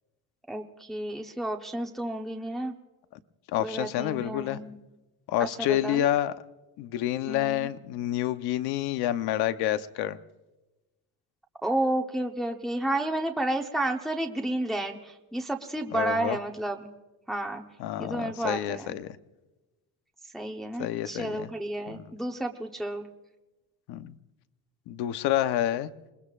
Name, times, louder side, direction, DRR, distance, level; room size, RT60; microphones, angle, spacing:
voice 1, 0.5-2.7 3.6-4.8 5.6-6.0 7.3-7.7 11.6-16.9 17.3-17.6 18.0-18.9 20.3-23.0, right 1 dB, ahead, 2 dB, 0.9 m, -31 dB
voice 2, 3.5-4.6 5.3-6.4 6.8-10.2 15.9-16.4 17.8-19.2 20.8-21.5 21.9-22.1 23.9-24.1 24.9-25.9, left 12 dB, 70° left, 12 dB, 0.9 m, -28 dB
28.5 x 20.5 x 2.5 m, 1.1 s
cardioid pair, 145°, 40 cm